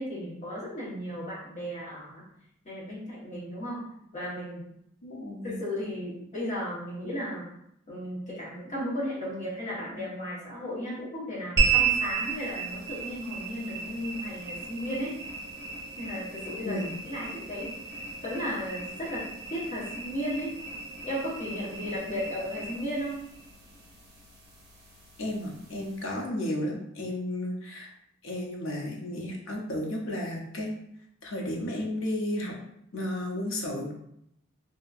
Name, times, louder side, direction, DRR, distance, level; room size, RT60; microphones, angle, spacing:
voice 1, 0.0-2.2 2.6-3.8 4.1-4.7 5.4-7.5 7.9-15.2 16.0-16.8 17.1-17.7 18.2-20.5 21.0-23.2, equal, 35° left, -7 dB, 1.0 m, -35 dB
voice 2, 5.0-5.6 16.6-16.9 25.2-27.9 28.2-30.7 31.2-32.6 32.9-33.9, left 1 dB, 75° left, 0 dB, 0.6 m, -33 dB
sound 1, 11.6-26.2, right 5 dB, 55° right, 0.8 m, -34 dB
2.8 x 2.5 x 2.4 m, 0.74 s
head